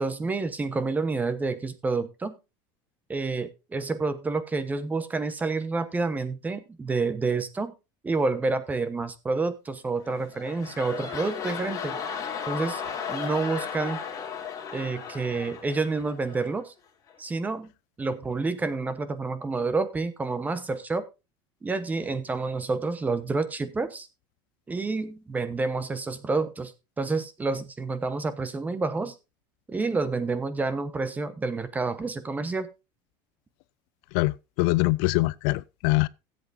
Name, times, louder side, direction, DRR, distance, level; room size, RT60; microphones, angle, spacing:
voice 1, 0.0-2.4 3.1-7.7 8.0-12.0 12.5-12.8 13.1-14.0 14.7-16.7 17.2-17.7 18.0-21.0 21.6-24.1 24.7-26.7 27.0-29.1 29.7-32.7, right 3 dB, 15° right, 1.1 m, -29 dB
sound 1, 10.0-16.6 17.1-17.2, left 7 dB, 30° left, 3.1 m, -35 dB
voice 2, 34.1-36.1, left 21 dB, 65° left, 0.4 m, -24 dB
17.0 x 8.1 x 2.7 m
supercardioid pair, 140°, 12 cm